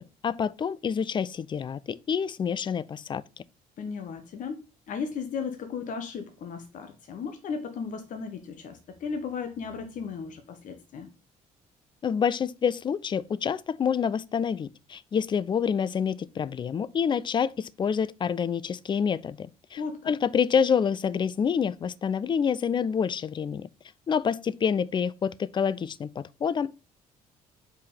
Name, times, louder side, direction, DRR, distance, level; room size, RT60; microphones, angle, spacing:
voice 1, 0.0-3.2 12.0-19.8 20.1-23.7 24.1-26.7, left 7 dB, 25° left, 0.4 m, -27 dB
voice 2, 3.8-11.1 19.8-20.1, left 5 dB, 45° left, 0.9 m, -35 dB
5.1 x 4.5 x 4.9 m
figure-of-eight pair, 50°, 19 cm